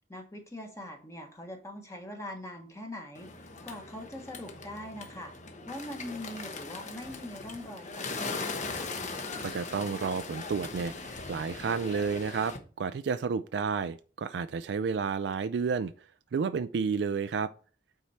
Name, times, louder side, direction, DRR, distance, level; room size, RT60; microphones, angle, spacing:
voice 1, 0.1-5.3 5.6-8.9, left 1 dB, 15° left, 1.2 m, -42 dB
Bird, 3.1-12.6, left 3 dB, 45° left, 1.0 m, -40 dB
sound 1, 8.6-11.7, left 2 dB, 65° left, 2.3 m, -58 dB
voice 2, 9.4-15.9 16.3-17.5, right 5 dB, 70° right, 0.3 m, -31 dB
8.2 x 4.5 x 4.2 m
head